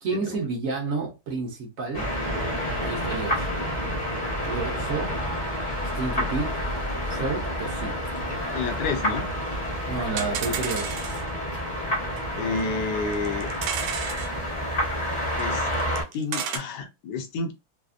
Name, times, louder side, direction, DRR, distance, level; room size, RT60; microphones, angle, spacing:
voice 1, 0.0-2.1 2.7-3.5 4.5-5.1 5.9-6.6 7.1-7.9 9.9-10.9, right 4 dB, 55° right, 1.0 m, -30 dB
sound 1, 1.9-16.0, equal, 30° left, 0.8 m, -29 dB
sound 2, 8.2-8.3 8.4-8.5 8.7-8.8 9.3-9.4 9.6-9.7 10.2-11.3 12.2-12.3 12.6-12.7 13.1-14.3 15.4-15.5 15.7-16.6, right 7 dB, 85° right, 1.4 m, -32 dB
voice 2, 8.5-9.3 12.3-13.5 15.4-15.7 16.1-17.5, left 4 dB, 70° left, 1.1 m, -29 dB
3.3 x 2.0 x 2.4 m
omnidirectional pair, 2.2 m